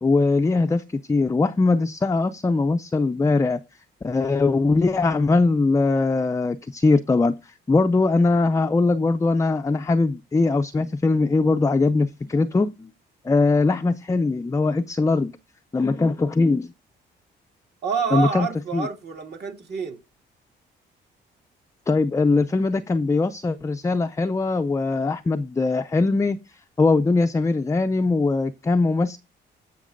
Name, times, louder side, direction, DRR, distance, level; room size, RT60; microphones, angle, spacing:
voice 1, 0.0-3.6 4.0-12.9 13.2-15.3 15.7-16.7 18.1-18.5 18.7-18.9 21.9-26.4 26.8-29.2, left 3 dB, 15° left, 0.4 m, -21 dB
voice 2, 17.8-20.0, right 6 dB, 55° right, 2.4 m, -27 dB
14.5 x 5.9 x 2.5 m
cardioid pair, 90°, 20 cm